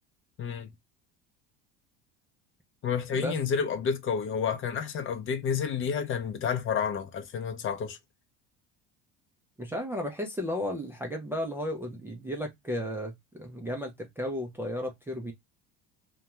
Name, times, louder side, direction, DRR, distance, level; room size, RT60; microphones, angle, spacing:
voice 1, 0.4-0.7 2.8-8.0, left 6 dB, 40° left, 0.6 m, -30 dB
voice 2, 9.6-15.3, left 1 dB, 5° right, 0.4 m, -34 dB
2.3 x 2.1 x 2.8 m
cardioid pair, 125°, 33 cm